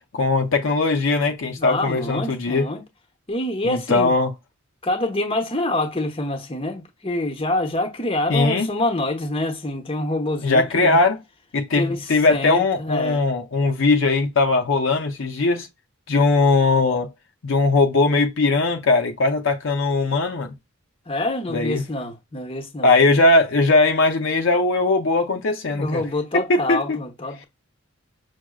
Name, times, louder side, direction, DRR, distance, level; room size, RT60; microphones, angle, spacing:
voice 1, 0.1-2.7 3.6-4.3 8.3-8.7 10.4-11.2 11.5-15.7 16.1-17.1 17.4-20.5 21.5-21.8 22.8-26.0 26.3-27.0, left 3 dB, 60° left, 0.6 m, -19 dB
voice 2, 1.6-2.8 3.3-4.1 4.8-11.0 11.7-13.2 21.1-22.9 25.7-27.5, left 1 dB, 25° left, 0.9 m, -26 dB
6.1 x 2.1 x 2.3 m
head